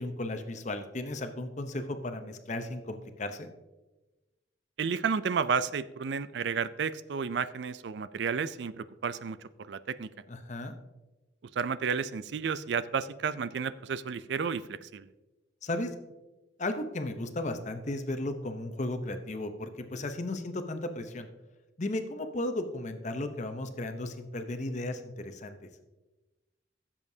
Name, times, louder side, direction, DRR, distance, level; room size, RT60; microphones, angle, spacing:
voice 1, 0.0-3.5 10.3-10.8 15.6-15.9 16.6-21.3 21.8-25.6, left 2 dB, 40° left, 7 dB, 0.8 m, -35 dB
voice 2, 4.8-9.4 9.7-10.1 11.6-15.1, right 6 dB, 65° right, 15 dB, 0.4 m, -32 dB
15.5 x 7.3 x 2.7 m, 1.1 s
head